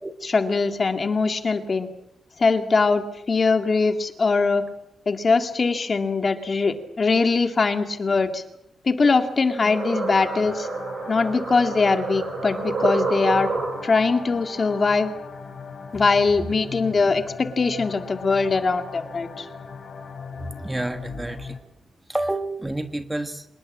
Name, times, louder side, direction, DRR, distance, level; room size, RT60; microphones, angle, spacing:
voice 1, 0.2-1.9 2.4-4.6 5.1-8.4 8.8-10.7 11.1-13.5 13.8-15.1 15.9-19.5, left 4 dB, 30° left, 7 dB, 2.1 m, -22 dB
sound 1, 9.0-14.1, right 4 dB, 50° right, 4.9 m, -29 dB
sound 2, 9.6-21.6, left 5 dB, 55° left, 5.4 m, -39 dB
voice 2, 20.4-21.6 22.1-23.4, right 1 dB, 10° right, 8 dB, 1.4 m, -29 dB
26.0 x 21.0 x 7.4 m, 0.79 s
wide cardioid pair, 165°, 0 cm